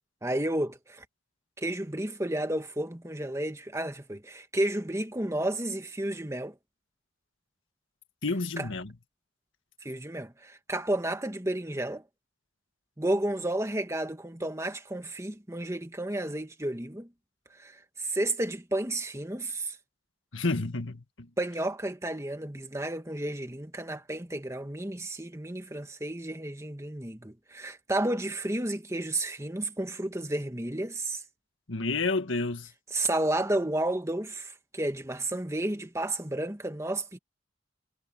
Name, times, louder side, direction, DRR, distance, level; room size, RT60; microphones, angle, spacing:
voice 1, 0.2-1.0 1.6-6.5 8.6-8.7 9.8-12.0 13.0-17.1 17.5-19.8 21.4-31.2 32.9-37.2, right 1 dB, 15° right, 1.6 m, -32 dB
voice 2, 8.2-8.9 20.3-21.3 31.7-32.7, left 3 dB, 75° left, 1.8 m, -30 dB
head